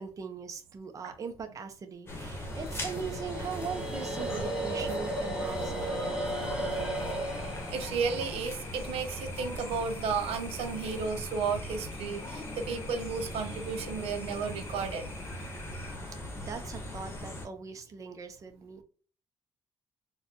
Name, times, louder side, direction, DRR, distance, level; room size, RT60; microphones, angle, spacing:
voice 1, 0.0-6.6 16.4-18.8, right 5 dB, 35° right, 0.6 m, -40 dB
sound 1, 2.1-17.5, left 1 dB, 25° left, 1.0 m, -40 dB
sound 2, 2.4-9.6, right 1 dB, 10° right, 0.8 m, -36 dB
sound 3, 6.8-16.0, left 3 dB, 70° left, 0.7 m, -50 dB
voice 2, 7.7-15.1, right 5 dB, 85° right, 0.6 m, -33 dB
3.9 x 2.2 x 2.9 m
cardioid pair, 120°, 10 cm